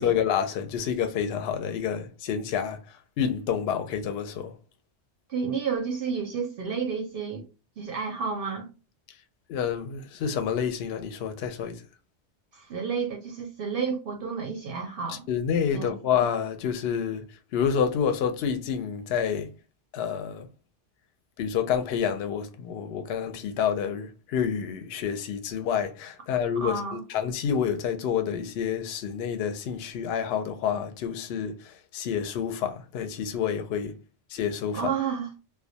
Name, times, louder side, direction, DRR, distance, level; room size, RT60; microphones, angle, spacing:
voice 1, 0.0-2.8 3.2-4.5 9.5-11.8 15.3-17.3 17.5-19.5 19.9-20.5 21.4-26.8 27.1-33.9 34.3-34.8, left 8 dB, 65° left, 0.7 m, -28 dB
voice 2, 5.3-7.5 7.8-8.7 12.5-15.3 15.7-15.9 26.6-27.0 34.7-35.3, right 5 dB, 60° right, 0.7 m, -31 dB
2.2 x 2.2 x 2.6 m
omnidirectional pair, 1.2 m